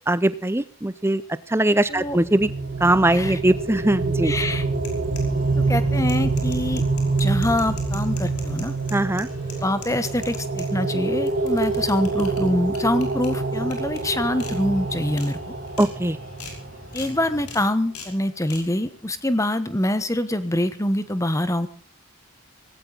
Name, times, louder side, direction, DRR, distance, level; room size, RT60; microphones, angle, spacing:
voice 1, 0.1-1.2 1.5-2.5 2.8-4.3 8.9-9.3 15.8-16.2, right 1 dB, 10° right, 15 dB, 0.6 m, -20 dB
sound 1, 2.0-16.7, right 3 dB, 50° right, 2.1 m, -26 dB
voice 2, 3.1-3.4 4.2-4.7 5.7-6.8 7.2-8.7 9.6-15.5 16.9-21.7, left 1 dB, 15° left, 12 dB, 1.2 m, -25 dB
sound 2, 4.8-5.5 5.9-10.7 11.1-12.4 12.7-13.3 13.7-14.0 14.4-14.5 14.9-15.3 15.7-15.9 16.4-16.6 16.9-17.1 17.5-17.6 17.9-18.1 18.5-18.6, left 6 dB, 90° left, 5.4 m, -40 dB
sound 3, 5.3-17.6, equal, 35° left, 7.0 m, -44 dB
18.0 x 17.5 x 4.0 m, 0.42 s
head